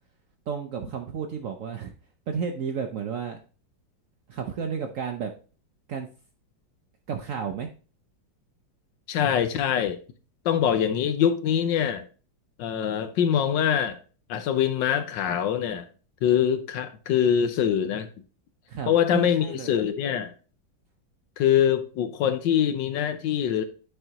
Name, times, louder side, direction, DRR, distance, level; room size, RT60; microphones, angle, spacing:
voice 1, 0.5-1.9 2.3-3.4 4.3-5.3 5.9-6.1 7.1-7.7 18.7-19.8, right 6 dB, 75° right, 0.7 m, -32 dB
voice 2, 9.1-10.0 10.4-12.0 12.6-14.0 14.3-15.8 16.2-18.1 18.9-20.3 21.4-23.6, left 9 dB, 75° left, 1.3 m, -24 dB
9.9 x 4.5 x 2.8 m
omnidirectional pair, 2.1 m